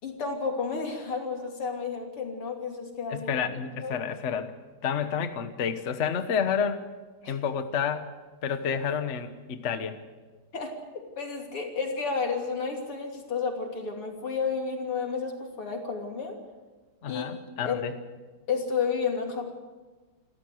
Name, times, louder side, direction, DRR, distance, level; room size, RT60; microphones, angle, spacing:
voice 1, 0.0-3.3 3.8-4.0 7.2-7.4 10.5-16.4 17.1-17.3 17.7-17.8 18.5-19.6, left 5 dB, 85° left, 2 dB, 3.9 m, -31 dB
voice 2, 3.1-4.5 4.8-6.8 7.3-8.1 8.4-10.0 17.0-17.9, left 7 dB, 40° left, 9 dB, 1.2 m, -29 dB
28.0 x 13.5 x 7.9 m, 1.3 s
omnidirectional pair, 2.4 m